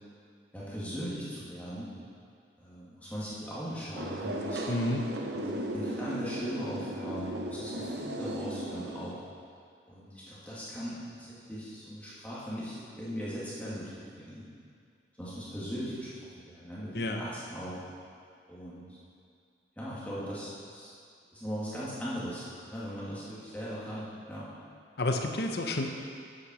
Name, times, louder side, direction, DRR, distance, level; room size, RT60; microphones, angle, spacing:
voice 1, 0.5-1.9 2.6-4.6 5.3-9.2 9.9-14.5 15.2-17.8 18.5-18.9 19.8-20.9 21.3-24.5, equal, 10° left, -9 dB, 1.8 m, -39 dB
sound 1, 3.9-9.1, right 1 dB, 70° right, 0.8 m, -36 dB
voice 2, 4.7-5.0 16.9-17.2 25.0-25.9, left 1 dB, 60° left, 3 dB, 0.8 m, -30 dB
8.0 x 6.5 x 6.1 m, 2.3 s
head